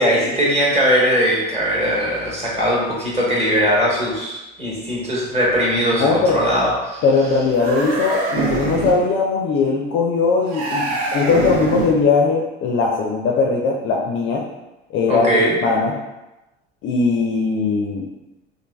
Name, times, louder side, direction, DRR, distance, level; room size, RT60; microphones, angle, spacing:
voice 1, 0.0-7.0 15.1-15.6, equal, 20° right, -5 dB, 1.1 m, -19 dB
voice 2, 5.9-6.4 7.0-10.9 11.1-14.4 14.9-15.3 15.6-16.0 16.8-18.1, left 4 dB, 40° left, -1 dB, 0.4 m, -19 dB
sound 1, 7.5-9.1 10.5-12.1, right 3 dB, 50° right, 0.6 m, -24 dB
3.1 x 2.3 x 2.2 m, 1.0 s
hypercardioid pair, 70°, 31 cm